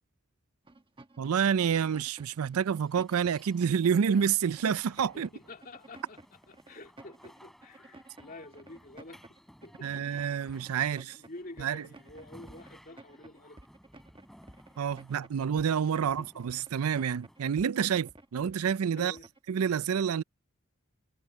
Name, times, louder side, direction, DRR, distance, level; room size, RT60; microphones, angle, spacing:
sound 1, 0.7-19.5, right 2 dB, 25° right, 1.1 m, -53 dB
voice 1, 1.2-5.3 9.8-11.2 11.6-11.8 14.8-19.2 19.5-20.2, right 7 dB, 80° right, 0.4 m, -28 dB
sound 2, 1.6-18.4, equal, ahead, 6.1 m, -59 dB
voice 2, 5.1-10.7 11.0-13.6 16.0-16.3 18.4-18.6 19.0-19.3 20.1-20.2, left 2 dB, 40° left, 2.8 m, -49 dB
head